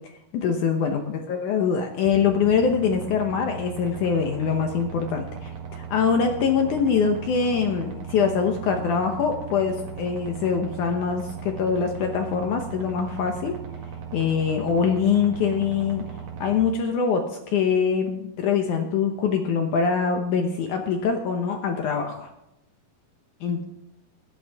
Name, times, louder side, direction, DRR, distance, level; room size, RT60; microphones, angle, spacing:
voice 1, 0.3-13.6 14.1-16.1 16.4-22.3 23.4-23.6, left 6 dB, 70° left, 4 dB, 2.0 m, -24 dB
sound 1, 2.0-16.5, right 7 dB, 50° right, 2.8 m, -37 dB
15.0 x 11.5 x 3.5 m, 0.86 s
omnidirectional pair, 4.4 m